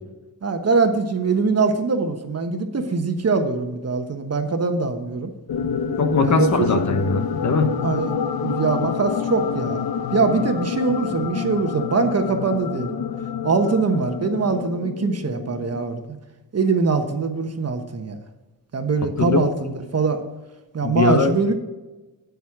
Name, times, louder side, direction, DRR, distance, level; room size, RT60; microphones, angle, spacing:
voice 1, 0.4-5.3 6.2-6.7 7.8-8.1 8.4-9.8 10.1-12.9 13.4-16.0 16.5-18.2 18.7-20.2 20.7-21.5, right 4 dB, 40° right, 6 dB, 1.2 m, -22 dB
sound 1, 5.5-15.8, left 7 dB, 65° left, 0.9 m, -27 dB
voice 2, 6.0-7.7 19.0-19.5 20.8-21.3, left 3 dB, 45° left, 7 dB, 1.1 m, -21 dB
8.5 x 8.3 x 4.7 m, 1.1 s
cardioid pair, 105°, 39 cm